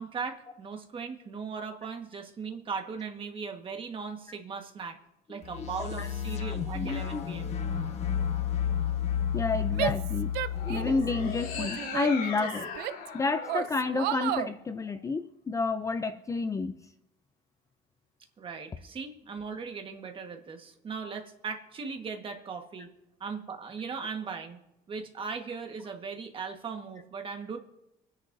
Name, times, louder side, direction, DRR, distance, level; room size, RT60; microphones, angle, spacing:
voice 1, 0.0-5.0 5.3-7.5 18.4-22.9 23.2-24.6 24.9-27.6, right 5 dB, 30° right, 4 dB, 1.4 m, -38 dB
voice 2, 5.3-5.7 6.0-6.1 6.7-7.3 9.3-10.3 10.7-12.7 13.1-16.9, left 4 dB, 20° left, 10 dB, 0.4 m, -30 dB
sound 1, 5.4-11.7, left 8 dB, 40° left, 1.3 m, -32 dB
Female speech woman speaking / Yell, 9.7-11.1 11.5-13.1 13.5-14.5, right 12 dB, 85° right, 0.5 m, -33 dB
sound 2, 10.5-14.9, left 4 dB, 70° left, 5.1 m, -39 dB
26.0 x 10.5 x 2.6 m, 0.88 s
cardioid pair, 150°, 16 cm